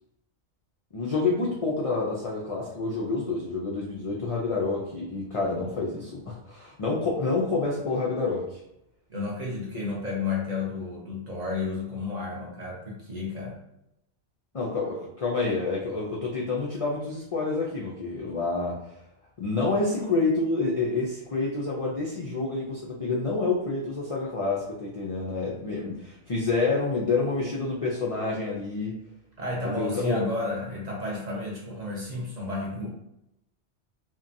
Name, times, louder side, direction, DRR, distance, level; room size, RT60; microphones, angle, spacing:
voice 1, 0.9-8.6 14.5-18.8 19.4-28.9 29.8-30.2, left 3 dB, 70° left, -4 dB, 0.3 m, -28 dB
voice 2, 9.1-13.6 29.4-32.9, left 3 dB, 45° right, -3 dB, 0.6 m, -32 dB
2.7 x 2.1 x 2.5 m, 0.83 s
omnidirectional pair, 1.2 m